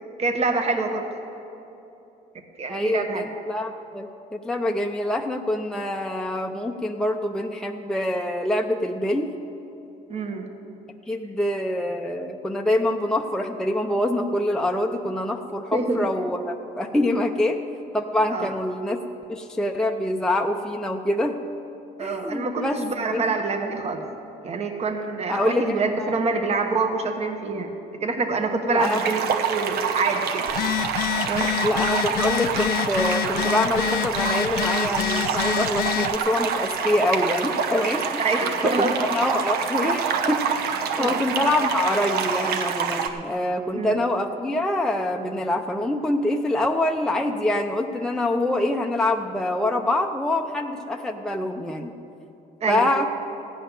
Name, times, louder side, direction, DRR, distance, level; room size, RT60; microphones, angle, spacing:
voice 1, 0.2-1.1 2.6-3.3 10.1-10.5 15.7-16.0 18.3-18.5 22.0-24.0 24.4-27.7 28.0-29.2 29.5-30.5 31.3-31.5 38.2-38.9 41.0-41.2 43.7-44.0 52.6-52.8, right 3 dB, 40° right, 4 dB, 1.3 m, -26 dB
voice 2, 2.7-9.4 11.1-17.6 17.9-19.0 19.3-21.4 22.0-22.8 23.1-23.3 25.3-26.2 28.7-29.0 31.6-38.2 38.6-40.6 41.0-51.9 52.7-53.1, left 1 dB, 5° left, 2 dB, 0.6 m, -25 dB
sound 1, 28.8-43.1, right 6 dB, 70° right, 1.0 m, -26 dB
Telephone, 30.5-36.2, left 13 dB, 65° left, 0.4 m, -27 dB
15.0 x 5.5 x 9.8 m, 2.9 s
cardioid pair, 110°, 17 cm